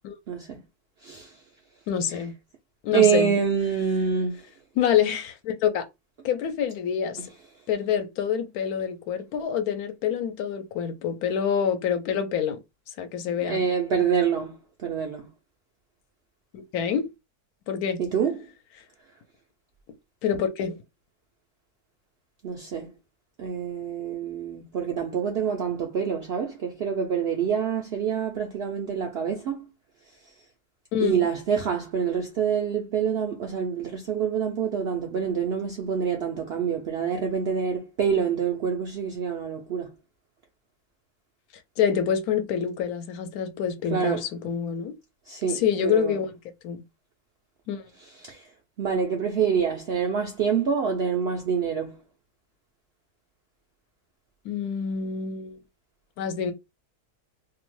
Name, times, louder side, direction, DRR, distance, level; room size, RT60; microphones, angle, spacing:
voice 1, 0.3-0.6 1.0-1.3 2.9-4.4 13.4-15.3 18.0-18.5 22.4-22.9 23.4-29.7 31.0-39.9 43.9-44.2 45.3-46.2 48.2-48.5 48.8-52.0, right 7 dB, 75° right, 0.5 m, -26 dB
voice 2, 1.9-2.3 2.8-3.4 4.8-5.9 6.2-7.2 7.7-12.6 13.0-13.6 16.5-17.1 17.7-18.0 20.2-20.8 30.9-31.3 41.8-44.9 45.4-46.4 46.6-46.8 47.7-47.8 54.4-55.6 56.2-56.5, left 8 dB, 85° left, 1.1 m, -26 dB
2.7 x 2.1 x 3.0 m
omnidirectional pair, 1.6 m